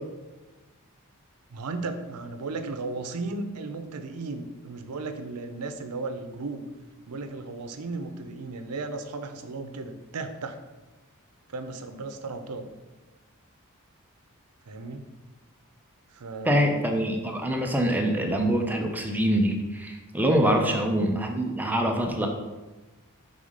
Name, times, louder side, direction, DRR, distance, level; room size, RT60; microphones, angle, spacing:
voice 1, 1.5-6.6 7.1-10.6 11.5-12.7 14.7-15.1 16.1-16.7 20.5-20.8, right 3 dB, 85° right, 9 dB, 0.6 m, -35 dB
voice 2, 16.4-22.3, equal, 10° right, 2 dB, 0.5 m, -24 dB
5.6 x 3.6 x 5.0 m, 1.1 s
head